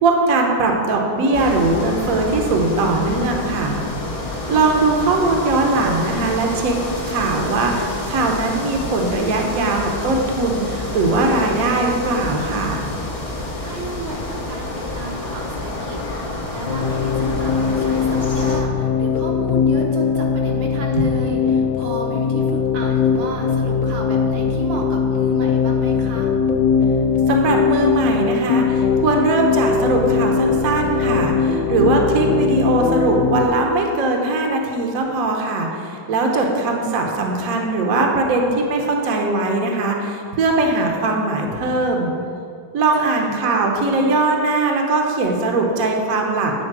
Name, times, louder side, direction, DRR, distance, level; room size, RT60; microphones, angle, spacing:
voice 1, 0.0-3.8 4.5-6.8 7.1-12.8 27.3-42.1 42.7-46.5, right 3 dB, 55° right, 1 dB, 1.1 m, -20 dB
sound 1, 1.3-18.6, left 2 dB, 40° left, 0.5 m, -28 dB
voice 2, 13.6-26.3 42.9-43.4, right 2 dB, 80° right, 0 dB, 1.8 m, -33 dB
sound 2, 16.7-33.5, left 6 dB, 85° left, 1.4 m, -20 dB
9.0 x 4.1 x 6.0 m, 2.4 s
omnidirectional pair, 2.1 m